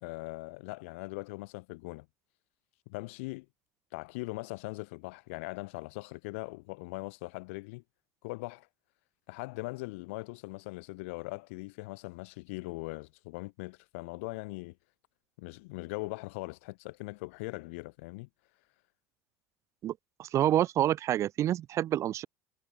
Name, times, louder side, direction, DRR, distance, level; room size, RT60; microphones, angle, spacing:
voice 1, 0.0-2.1 2.9-3.5 3.9-7.8 8.2-8.7 9.3-14.8 15.4-18.3, left 25 dB, 65° left, 1.3 m, -40 dB
voice 2, 20.2-22.3, right 12 dB, 40° right, 0.5 m, -27 dB
figure-of-eight pair, 70°, 8 cm